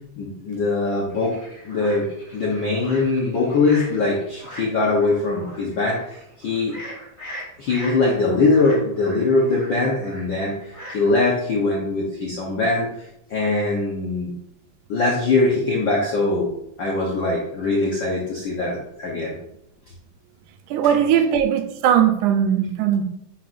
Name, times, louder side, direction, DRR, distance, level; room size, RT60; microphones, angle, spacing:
voice 1, 0.2-1.3 1.6-2.1 2.3-6.7 7.6-10.5 10.9-12.9 13.3-14.3 14.9-16.5 16.8-19.4, left 3 dB, 70° left, -3 dB, 1.1 m, -21 dB
sound 1, 1.1-11.3, equal, 5° left, 2.5 m, -40 dB
voice 2, 20.7-23.0, right 9 dB, 90° right, 7 dB, 2.2 m, -19 dB
10.0 x 5.0 x 2.5 m, 0.77 s
omnidirectional pair, 3.4 m